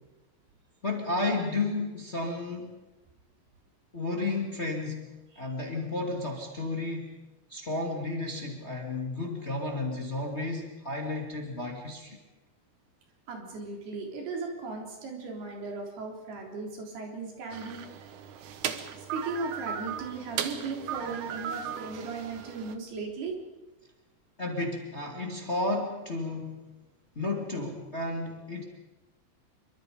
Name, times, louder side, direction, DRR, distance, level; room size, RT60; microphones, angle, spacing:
voice 1, 0.8-2.7 3.9-7.2 7.5-12.2 24.4-26.6 27.2-28.6, left 2 dB, 20° left, 1 dB, 2.3 m, -32 dB
voice 2, 13.3-18.1 18.9-23.4, right 3 dB, 80° right, 1 dB, 5.7 m, -37 dB
sound 1, 17.5-22.8, right 9 dB, 65° right, 2.3 m, -37 dB
27.0 x 24.0 x 5.2 m, 1.1 s
omnidirectional pair, 4.5 m